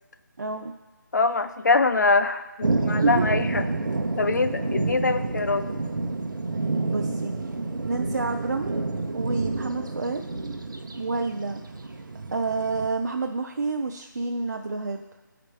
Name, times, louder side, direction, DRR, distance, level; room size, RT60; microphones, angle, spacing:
voice 1, 0.4-0.7 2.8-3.2 6.9-7.3 7.8-8.7 9.1-10.2 11.0-11.6 12.3-15.0, right 3 dB, 55° right, 3 dB, 0.4 m, -28 dB
voice 2, 1.1-3.6 4.2-5.6, left 3 dB, 60° left, 9 dB, 0.4 m, -23 dB
sound 1, 2.6-12.9, right 3 dB, 75° right, 0.8 m, -29 dB
12.0 x 5.0 x 3.2 m, 1.2 s
figure-of-eight pair, 180°, 11 cm